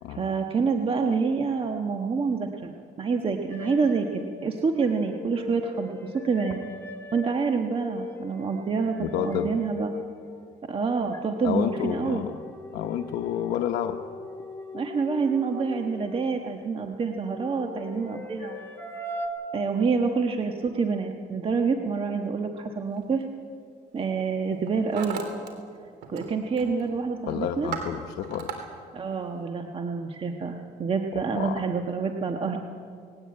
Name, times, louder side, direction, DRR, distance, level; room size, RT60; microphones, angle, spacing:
voice 1, 0.1-6.6 7.1-9.9 10.7-12.2 14.7-18.6 19.5-23.3 23.9-25.2 26.1-27.7 28.9-32.6, right 5 dB, 35° right, 4 dB, 1.4 m, -27 dB
sound 1, 3.5-10.7 11.1-16.3 17.3-19.3, left 2 dB, 15° left, 2.9 m, -40 dB
voice 2, 9.0-9.5 11.4-12.4 12.7-14.0 27.3-28.5 31.1-31.6, left 10 dB, 80° left, 4 dB, 1.0 m, -30 dB
Hammer, 23.0-23.2 24.0-24.3 24.5-25.5 25.8-26.3 26.6-26.9 27.3-28.6, right 7 dB, 90° right, 3.4 m, -36 dB
19.5 x 18.5 x 8.6 m, 2.2 s
cardioid pair, 110°, 17 cm